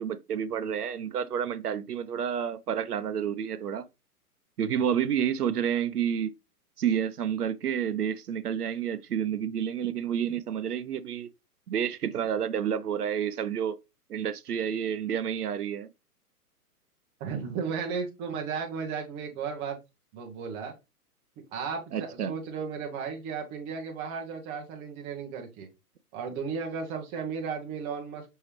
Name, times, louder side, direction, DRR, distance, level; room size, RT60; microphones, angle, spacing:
voice 1, 0.0-3.9 4.6-6.3 6.8-11.3 11.7-13.8 14.1-15.9 21.9-22.3, right 8 dB, 75° right, 0.6 m, -29 dB
voice 2, 17.2-19.8 20.1-20.7 21.5-25.7 26.1-28.2, right 6 dB, 15° right, 0.5 m, -34 dB
5.4 x 3.1 x 3.0 m
figure-of-eight pair, 115°, 46 cm